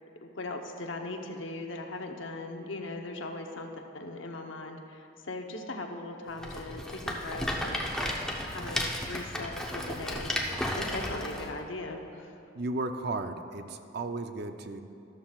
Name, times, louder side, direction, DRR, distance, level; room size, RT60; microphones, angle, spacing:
voice 1, 0.2-7.8 8.5-10.4 10.8-12.3, left 2 dB, 75° left, 3 dB, 0.9 m, -39 dB
Rattle, 6.4-11.5, left 1 dB, 5° left, 0.8 m, -33 dB
voice 2, 12.5-14.8, right 2 dB, 55° right, 8 dB, 0.5 m, -34 dB
13.5 x 13.0 x 2.4 m, 2.6 s
head